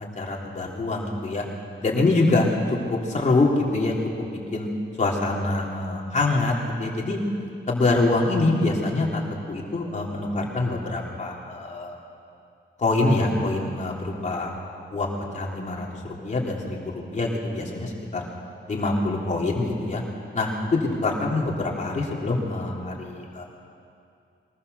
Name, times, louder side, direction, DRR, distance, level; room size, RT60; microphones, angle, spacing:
voice 1, 0.2-1.5 1.8-4.3 4.5-4.7 5.0-7.2 7.7-12.0 12.8-14.5 14.9-18.3 18.7-20.0 20.3-23.4, left 2 dB, 35° left, -2 dB, 3.5 m, -25 dB
22.5 x 20.5 x 6.9 m, 2.5 s
wide cardioid pair, 160°, 20 cm